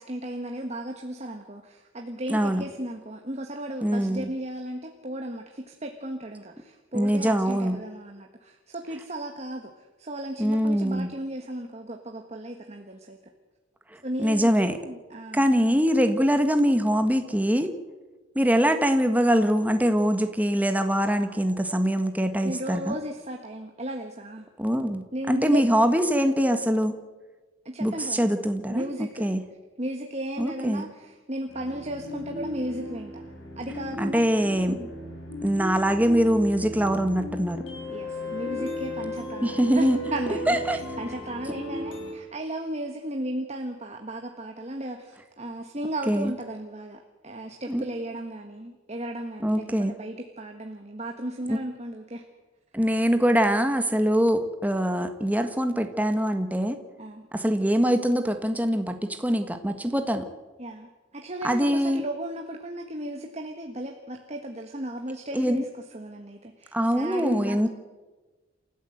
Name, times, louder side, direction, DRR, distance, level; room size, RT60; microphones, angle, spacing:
voice 1, 0.0-13.2 14.0-15.5 22.4-24.5 25.1-25.6 27.6-28.2 28.7-29.3 29.8-33.2 33.6-34.2 34.7-34.9 37.9-52.2 57.0-57.2 60.6-65.7 65.9-67.7, right 1 dB, 35° right, 3 dB, 1.5 m, -35 dB
voice 2, 2.3-2.6 3.8-4.3 6.9-7.8 10.4-11.1 13.9-14.8 15.3-17.7 18.3-22.9 24.6-27.0 27.8-28.8 29.2-29.4 30.4-30.8 34.0-34.8 35.4-37.6 39.4-40.0 40.5-40.8 46.1-46.3 47.7-47.8 49.4-49.9 51.5-51.6 52.7-56.8 57.3-60.3 61.4-62.0 65.3-65.6 66.7-67.7, equal, 10° right, 7 dB, 1.6 m, -23 dB
sound 1, 31.5-42.1, left 1 dB, 80° left, 5.9 m, -36 dB
28.5 x 13.5 x 8.0 m, 1.2 s
head